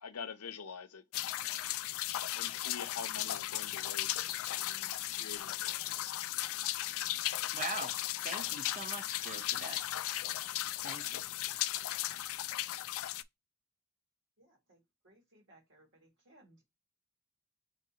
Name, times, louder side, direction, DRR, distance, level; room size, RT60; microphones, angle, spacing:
voice 1, 0.0-1.0 2.3-6.1, left 6 dB, 80° left, 0.7 m, -46 dB
sound 1, 1.1-13.2, left 14 dB, 65° left, 0.3 m, -36 dB
voice 2, 7.5-8.0 8.2-9.8 10.8-11.2, right 3 dB, 35° right, 0.9 m, -42 dB
voice 3, 14.4-16.6, right 1 dB, 55° right, 2.2 m, -64 dB
4.1 x 4.1 x 2.9 m
head